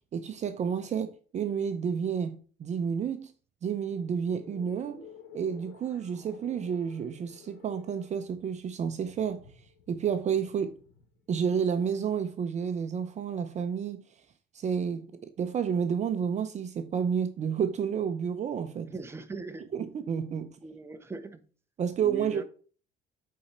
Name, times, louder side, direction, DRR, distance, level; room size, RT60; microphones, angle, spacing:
voice 1, 0.1-3.3 3.6-5.0 5.3-9.4 9.9-10.8 11.3-14.0 14.5-15.1 15.4-18.9 19.7-20.6 21.8-22.4, right 7 dB, 45° right, 0.7 m, -30 dB
sound 1, 3.6-12.4, left 6 dB, 90° left, 1.7 m, -53 dB
voice 2, 18.9-19.7 20.6-21.5 22.0-22.4, right 3 dB, 15° right, 0.9 m, -40 dB
8.4 x 4.3 x 4.3 m
cardioid pair, 110°, 17 cm